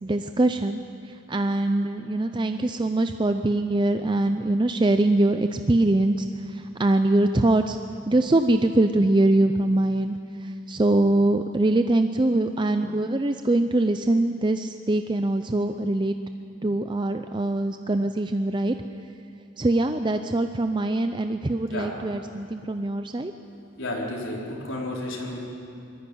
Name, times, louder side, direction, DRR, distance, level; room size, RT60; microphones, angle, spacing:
voice 1, 0.0-7.8 8.1-16.1 16.6-18.7 19.6-23.3, right 2 dB, 25° right, 8 dB, 0.5 m, -23 dB
voice 2, 23.8-25.5, left 1 dB, 65° left, -4 dB, 4.5 m, -32 dB
21.0 x 14.5 x 10.0 m, 2.6 s
head